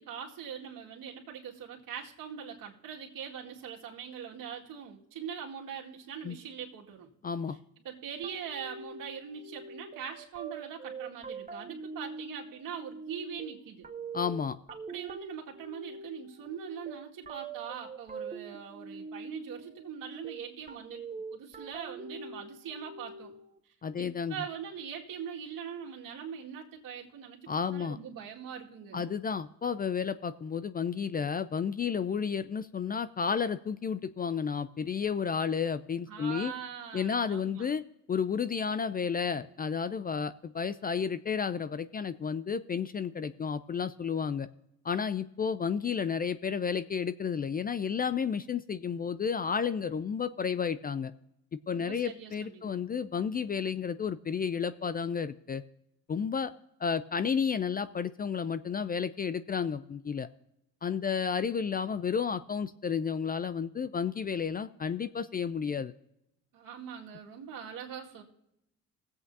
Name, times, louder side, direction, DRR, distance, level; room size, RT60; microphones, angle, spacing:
voice 1, 0.0-7.1 7.5-7.6 7.8-13.9 14.9-21.0 21.3-23.3 24.0-29.1 36.1-37.7 51.7-52.8 66.5-68.2, right 7 dB, 70° right, 0 dB, 2.1 m, -42 dB
voice 2, 7.2-7.6 14.1-14.6 23.8-24.3 27.5-28.0 28.9-36.5 36.9-37.8 38.1-44.5 44.8-51.1 51.7-55.6 56.1-56.5 56.8-60.3 60.8-65.9, left 6 dB, 25° left, 14 dB, 0.4 m, -32 dB
sound 1, 8.2-23.6, right 4 dB, 25° right, 0.8 m, -44 dB
20.5 x 8.1 x 2.7 m, 0.82 s
supercardioid pair, 80°, 34 cm